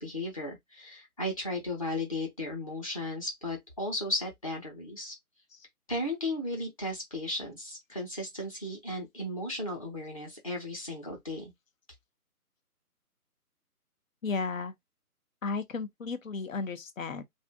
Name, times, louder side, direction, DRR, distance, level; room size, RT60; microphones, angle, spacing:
voice 1, 0.0-5.1 5.9-11.5, left 1 dB, 20° left, 0.8 m, -35 dB
voice 2, 14.2-14.7 15.4-17.2, left 4 dB, 60° left, 0.7 m, -34 dB
2.6 x 2.4 x 3.4 m
figure-of-eight pair, 155°, 46 cm